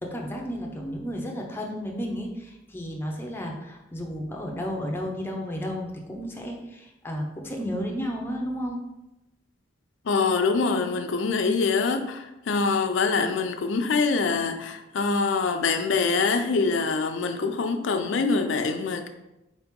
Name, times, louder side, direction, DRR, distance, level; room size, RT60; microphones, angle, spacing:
voice 1, 0.0-8.8, equal, 10° left, 0 dB, 0.6 m, -32 dB
voice 2, 10.1-19.1, left 4 dB, 70° left, 6 dB, 0.4 m, -24 dB
4.4 x 2.9 x 3.6 m, 0.94 s
head